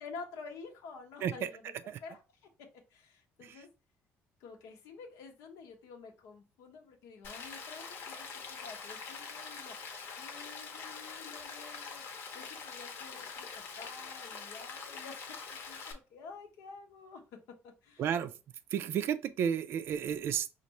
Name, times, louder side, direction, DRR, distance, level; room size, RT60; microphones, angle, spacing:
voice 1, 0.0-1.7 2.0-3.7 4.4-12.0 12.3-15.2 15.5-17.2 17.6-18.1, left 4 dB, 85° left, 1.0 m, -50 dB
Rain, 7.2-15.9, left 5 dB, 50° left, 0.9 m, -44 dB
voice 2, 18.0-18.3 18.7-20.5, right 8 dB, 50° right, 0.3 m, -32 dB
5.2 x 2.5 x 3.0 m
cardioid pair, 160°, 5 cm